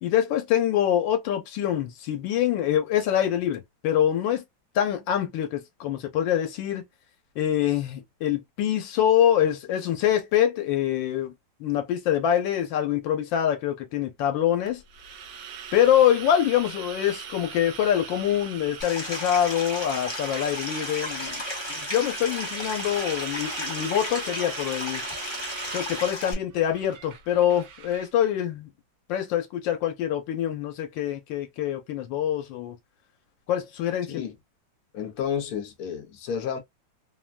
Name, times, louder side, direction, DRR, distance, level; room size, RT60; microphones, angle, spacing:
voice 1, 0.0-4.4 4.7-6.8 7.4-11.3 11.6-14.8 15.7-21.4 21.7-25.0 25.7-28.7 29.1-32.8 33.5-34.1, left 10 dB, 90° left, 1.4 m, -25 dB
sound 1, 14.7-28.1, right 7 dB, 70° right, 1.2 m, -39 dB
Stream, 18.8-26.3, left 2 dB, 35° left, 0.4 m, -34 dB
voice 2, 34.9-36.6, left 8 dB, 60° left, 1.1 m, -31 dB
3.3 x 2.2 x 2.4 m
omnidirectional pair, 2.0 m